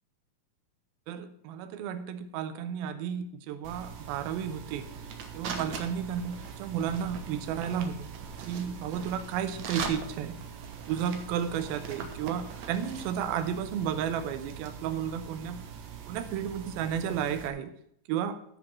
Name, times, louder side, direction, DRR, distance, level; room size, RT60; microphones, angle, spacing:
voice 1, 1.1-4.9 5.3-8.1 8.4-10.4 10.9-15.6 16.1-17.7 18.1-18.4, right 8 dB, 85° right, 9 dB, 2.7 m, -33 dB
sound 1, 3.6-17.5, right 6 dB, 60° right, 2.1 m, -41 dB
12.5 x 5.3 x 7.3 m, 0.70 s
omnidirectional pair, 4.2 m